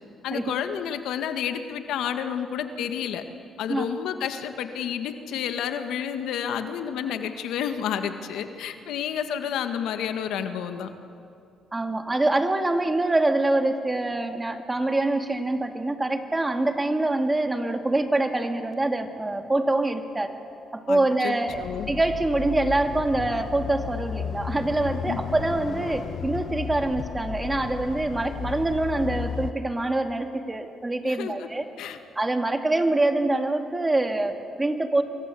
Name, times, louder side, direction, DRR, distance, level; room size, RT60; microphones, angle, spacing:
voice 1, 0.2-3.2 3.6-10.9 20.9-21.9 25.1-25.2 31.0-31.5 31.8-32.0, left 8 dB, 85° left, 7 dB, 1.7 m, -30 dB
voice 2, 11.7-20.3 20.7-21.6 21.9-31.7 32.2-35.0, right 2 dB, 20° right, 6 dB, 2.3 m, -25 dB
sound 1, 21.5-29.5, left 7 dB, 60° left, 1.2 m, -34 dB
27.0 x 23.0 x 8.5 m, 2.5 s
cardioid pair, 90°, 0 cm